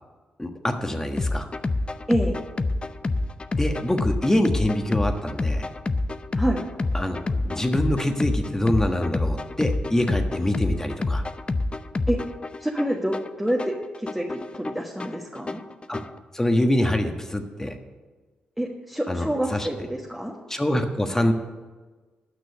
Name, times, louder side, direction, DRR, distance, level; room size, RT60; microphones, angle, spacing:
voice 1, 0.4-1.5 3.5-5.6 6.9-11.2 15.9-16.0 16.3-17.7 19.1-19.7 20.5-21.3, left 1 dB, 15° left, 5 dB, 1.4 m, -25 dB
sound 1, 1.2-16.2, left 2 dB, 30° left, 0.6 m, -28 dB
voice 2, 12.6-15.6 18.6-20.3, equal, 5° right, -2 dB, 1.4 m, -27 dB
9.8 x 6.1 x 8.5 m, 1.3 s
supercardioid pair, 50°, 3 cm